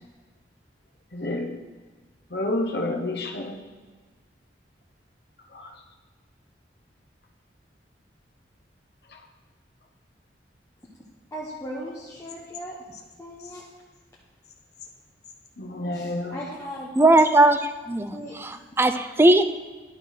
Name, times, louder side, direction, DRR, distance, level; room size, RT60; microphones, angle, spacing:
voice 1, 1.1-1.6 2.3-3.6 5.5-5.7 15.6-16.4, left 1 dB, 60° left, 3 dB, 1.1 m, -29 dB
voice 2, 11.3-12.8 13.2-13.6 15.9-16.9 18.1-18.4, equal, 15° left, -6 dB, 1.1 m, -37 dB
voice 3, 17.0-19.4, right 1 dB, 15° right, 9 dB, 0.4 m, -19 dB
11.0 x 4.4 x 5.9 m, 1.4 s
head